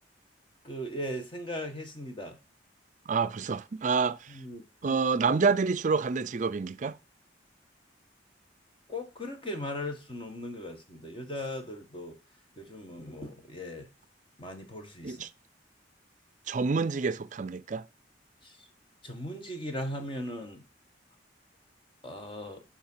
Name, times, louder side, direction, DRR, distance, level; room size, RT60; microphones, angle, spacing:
voice 1, 0.6-2.4 4.3-5.0 8.9-12.1 12.6-13.9 14.4-15.2 18.4-18.5 19.0-20.6 22.0-22.6, left 1 dB, 30° left, 1.6 m, -38 dB
voice 2, 3.1-4.3 4.8-7.0 15.0-15.3 16.5-17.9, right 5 dB, 45° right, 0.4 m, -28 dB
7.4 x 5.9 x 5.6 m
head